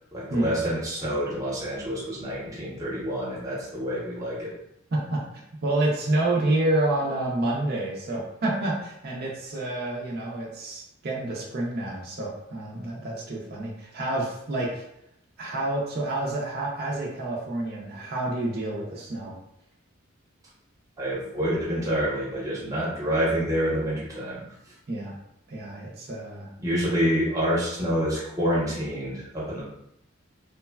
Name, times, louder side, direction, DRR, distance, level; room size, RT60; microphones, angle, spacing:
voice 1, 0.1-4.5 21.0-24.4 26.6-29.6, equal, 15° right, -7 dB, 0.7 m, -27 dB
voice 2, 4.9-5.2 5.6-14.8 15.4-19.4 24.9-25.1 25.5-26.5, right 1 dB, 50° right, -3 dB, 0.5 m, -28 dB
3.1 x 2.1 x 2.2 m, 0.80 s
head